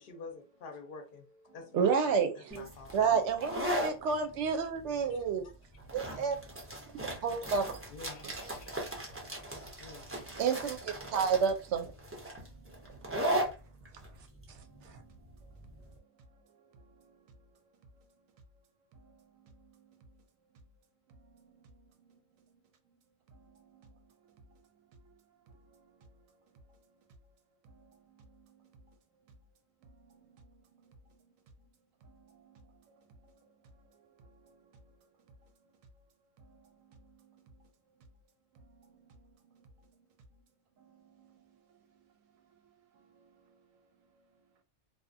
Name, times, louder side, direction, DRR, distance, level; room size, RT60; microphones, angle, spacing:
voice 1, 0.0-3.0 4.1-4.2 5.1-5.5 7.0-7.2 7.9-8.8 9.8-10.1, left 4 dB, 55° left, 0.7 m, -49 dB
voice 2, 1.7-2.5 2.9-5.5 5.9-6.3 7.2-7.7 10.4-11.9, right 6 dB, 70° right, 0.8 m, -29 dB
sound 1, 2.5-15.9, right 1 dB, 20° right, 0.3 m, -38 dB
voice 3, 6.6-7.2 8.5-9.6 10.2-10.5 11.0-11.2 12.3-13.9 14.5-18.3 18.9-20.2 21.1-22.6 23.3-27.1 27.6-29.0 29.8-31.3 32.0-35.4 35.6-35.8 36.4-37.7 38.0-38.1 38.5-40.0 40.8-44.5, right 3 dB, 90° right, 1.0 m, -62 dB
2.7 x 2.2 x 2.5 m
omnidirectional pair, 1.4 m